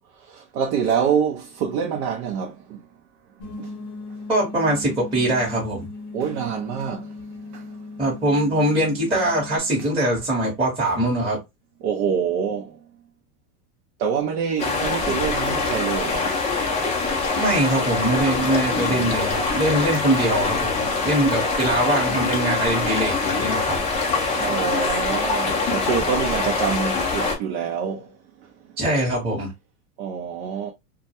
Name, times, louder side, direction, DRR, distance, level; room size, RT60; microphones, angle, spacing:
voice 1, 0.2-2.9 3.6-3.7 6.1-7.8 11.8-12.8 14.0-16.3 24.3-28.8 30.0-30.7, right 7 dB, 50° right, 0.6 m, -26 dB
sound 1, 3.4-9.6, left 3 dB, 55° left, 0.8 m, -38 dB
voice 2, 4.3-5.9 8.0-11.4 17.4-23.8 28.8-29.5, right 1 dB, 10° right, 0.9 m, -22 dB
sound 2, 14.6-27.4, left 3 dB, 15° left, 0.5 m, -24 dB
2.2 x 2.1 x 2.8 m
hypercardioid pair, 115°, 46 cm